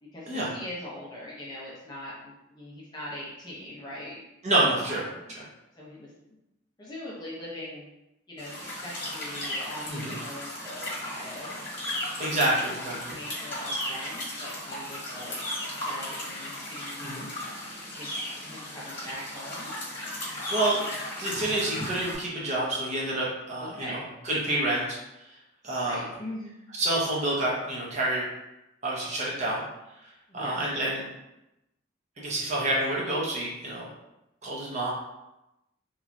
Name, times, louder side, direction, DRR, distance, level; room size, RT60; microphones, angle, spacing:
voice 1, 0.0-4.5 4.8-5.3 5.7-6.4 6.8-7.9 8.3-15.4 15.8-17.2 18.0-18.1 18.4-19.7 23.6-24.0 25.8-26.6 30.3-30.6, left 1 dB, 20° left, -6 dB, 0.5 m, -42 dB
voice 2, 4.4-5.0 5.3-5.4 9.9-10.2 12.2-13.1 17.0-17.3 20.5-20.9 21.2-24.0 24.2-25.0 25.6-26.0 26.8-28.2 28.8-29.6 30.3-31.1 32.2-33.9 34.4-34.9, right 1 dB, 35° right, -4 dB, 0.6 m, -28 dB
sound 1, 8.4-22.1, left 1 dB, 40° left, 1.2 m, -35 dB
3.0 x 2.2 x 2.5 m, 0.92 s
head